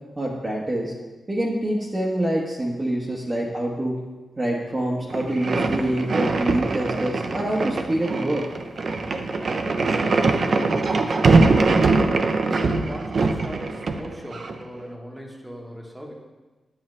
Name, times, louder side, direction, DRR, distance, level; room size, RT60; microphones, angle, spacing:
voice 1, 0.2-0.9 1.3-4.0 4.4-8.4, right 1 dB, 20° right, -3 dB, 1.0 m, -26 dB
sound 1, 5.1-14.6, right 3 dB, 50° right, 0.6 m, -22 dB
voice 2, 8.9-16.1, equal, 5° right, -1 dB, 1.2 m, -39 dB
8.6 x 7.3 x 3.2 m, 1.2 s
wide cardioid pair, 115°, 0 cm